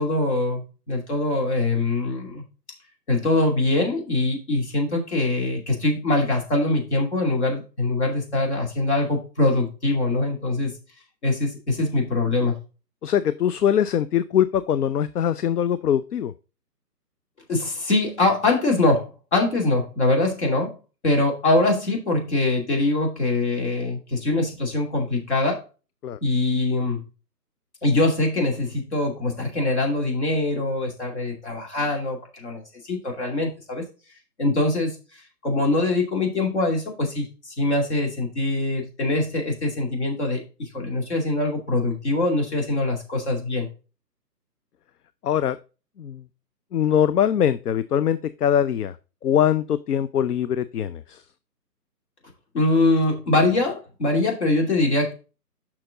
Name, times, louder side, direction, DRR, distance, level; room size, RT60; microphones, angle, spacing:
voice 1, 0.0-2.4 3.1-10.7 11.2-12.5 17.5-20.7 21.0-25.6 26.2-27.0 27.8-33.8 34.4-34.9 35.4-43.7 52.5-55.1, left 2 dB, 45° left, 1 dB, 2.7 m, -23 dB
voice 2, 13.0-16.3 26.0-26.2 45.2-45.6 46.0-46.2 46.7-49.0 49.2-51.2, left 9 dB, 65° left, 15 dB, 0.5 m, -22 dB
6.7 x 5.9 x 3.7 m, 0.32 s
hypercardioid pair, 175°, 49 cm